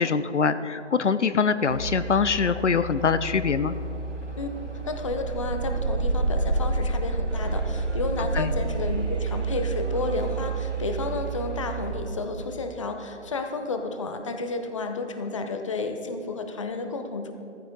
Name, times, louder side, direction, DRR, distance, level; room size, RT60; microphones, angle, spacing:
voice 1, 0.0-3.7 8.3-8.5, left 5 dB, 70° left, 13 dB, 0.7 m, -23 dB
sound 1, 1.6-11.9, right 3 dB, 85° right, 3.5 m, -29 dB
voice 2, 4.9-17.3, left 3 dB, 25° left, 6 dB, 0.7 m, -31 dB
sound 2, 7.3-12.7, equal, 10° right, 1.7 m, -47 dB
14.5 x 14.0 x 3.8 m, 2.7 s
figure-of-eight pair, 155°, 36 cm